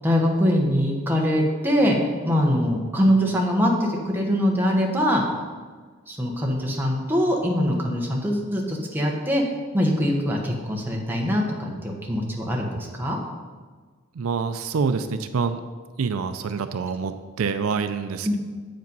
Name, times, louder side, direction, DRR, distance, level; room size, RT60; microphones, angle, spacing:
voice 1, 0.0-2.0 2.2-5.2 6.1-9.4 9.7-13.2 18.2-18.3, equal, 10° right, -1 dB, 1.0 m, -23 dB
voice 2, 14.1-15.6 16.0-18.4, right 5 dB, 75° right, 10 dB, 0.4 m, -26 dB
8.0 x 5.2 x 5.3 m, 1.5 s
head